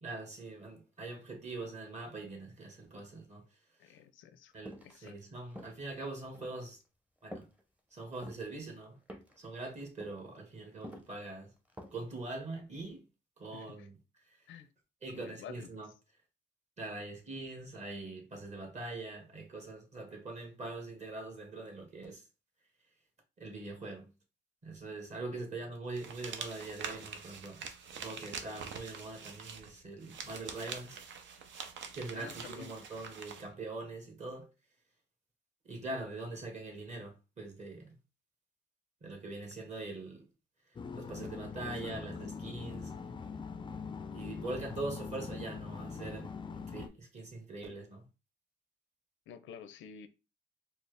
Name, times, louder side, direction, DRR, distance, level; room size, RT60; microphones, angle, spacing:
voice 1, 0.0-3.4 3.8-3.9 4.5-6.8 7.2-7.4 7.9-9.0 9.4-11.5 11.9-13.0 13.4-14.0 14.2-14.4 15.0-15.9 16.8-22.2 23.4-24.1 24.6-27.6 27.9-31.0 31.9-34.5 35.6-37.9 39.0-40.3 40.9-42.9 44.1-48.1, right 2 dB, 35° right, 1.4 m, -43 dB
voice 2, 3.8-4.5 4.8-5.2 13.5-13.9 14.5-14.7 15.1-15.7 25.3-25.5 32.1-32.7 41.5-42.3 49.3-50.1, left 8 dB, 80° left, 0.5 m, -50 dB
sound 1, 4.6-4.9 5.5-5.9 6.3-6.6 7.3-7.6 8.1-8.5 9.1-9.5 9.8-10.2 10.8-11.2 11.7-12.1 12.4-12.5, equal, 5° right, 0.7 m, -48 dB
rustling fabric and paper, 25.9-33.5, right 6 dB, 65° right, 0.7 m, -45 dB
sound 2, 40.8-46.9, left 5 dB, 25° left, 0.4 m, -42 dB
4.1 x 2.0 x 3.3 m
cardioid pair, 90°, 20 cm